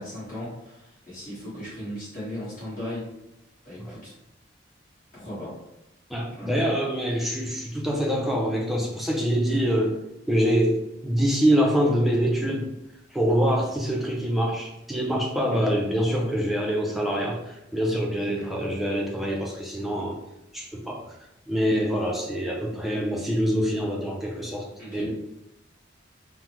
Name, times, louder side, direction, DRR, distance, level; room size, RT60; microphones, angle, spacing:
voice 1, 0.0-3.1 3.6-4.1 5.1-5.5 6.3-6.6 15.5-15.6 18.4-18.6 24.8-25.1, left 1 dB, 40° left, -10 dB, 1.3 m, -37 dB
voice 2, 6.1-10.0 10.3-12.7 13.1-20.2 20.5-21.0 21.5-25.1, equal, ahead, -1 dB, 0.4 m, -25 dB
3.5 x 2.0 x 2.9 m, 0.87 s
head